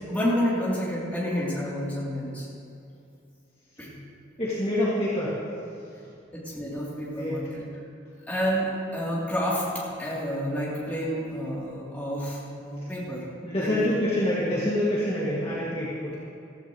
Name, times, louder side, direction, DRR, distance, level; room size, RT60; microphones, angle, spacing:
voice 1, 0.1-2.4 3.8-3.9 6.3-7.7 8.3-9.6 10.0-13.2 13.6-13.7, equal, 10° left, -8 dB, 3.3 m, -29 dB
voice 2, 4.4-5.4 7.2-7.4 13.4-16.2, left 1 dB, 30° left, -8 dB, 2.2 m, -26 dB
15.5 x 14.5 x 3.2 m, 2.6 s
head